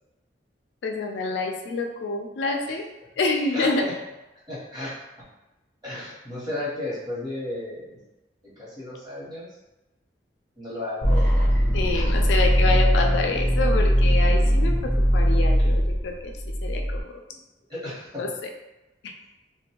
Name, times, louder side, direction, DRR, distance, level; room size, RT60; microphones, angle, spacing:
voice 1, 0.8-2.8 3.2-3.8 11.7-16.3 16.6-17.2 18.2-18.3 19.0-19.1, left 3 dB, 75° left, 3 dB, 0.4 m, -27 dB
voice 2, 3.3-3.9 4.5-5.3 5.8-8.0 8.6-9.5 10.6-12.4 17.3-17.4 17.7-18.2, left 1 dB, 25° right, -8 dB, 1.0 m, -34 dB
sound 1, 11.0-17.0, equal, 10° left, 0.6 m, -20 dB
2.6 x 2.2 x 2.9 m, 1.0 s
head